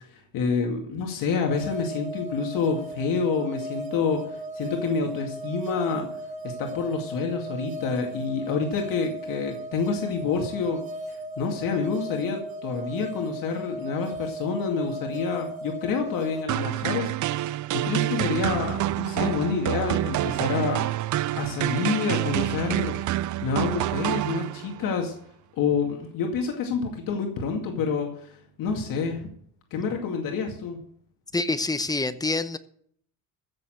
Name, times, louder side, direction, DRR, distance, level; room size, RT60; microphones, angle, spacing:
voice 1, 0.1-6.1 6.4-10.8 11.4-20.8 21.4-22.9 23.4-25.1 25.6-29.3 29.7-30.8, left 5 dB, 75° left, 2 dB, 2.4 m, -28 dB
sound 1, 1.5-16.4, right 1 dB, 25° right, 3.2 m, -36 dB
sound 2, 16.5-24.9, right 14 dB, 60° right, 0.5 m, -27 dB
voice 2, 31.3-32.6, left 3 dB, 10° left, 12 dB, 0.8 m, -26 dB
15.5 x 6.9 x 7.8 m, 0.63 s
cardioid pair, 125°, 33 cm